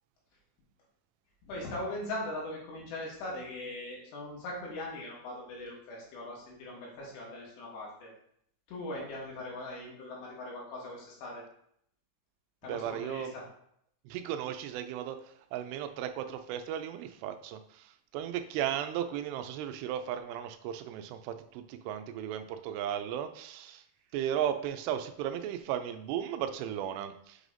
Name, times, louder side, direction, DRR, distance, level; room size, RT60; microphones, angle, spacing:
voice 1, 1.4-8.1 8.7-11.4 12.6-13.4, left 1 dB, 85° left, -4 dB, 3.9 m, -40 dB
voice 2, 12.7-13.3 14.1-23.8 24.1-27.4, right 10 dB, 90° right, 8 dB, 2.7 m, -35 dB
8.0 x 4.9 x 2.6 m, 0.70 s
omnidirectional pair, 4.8 m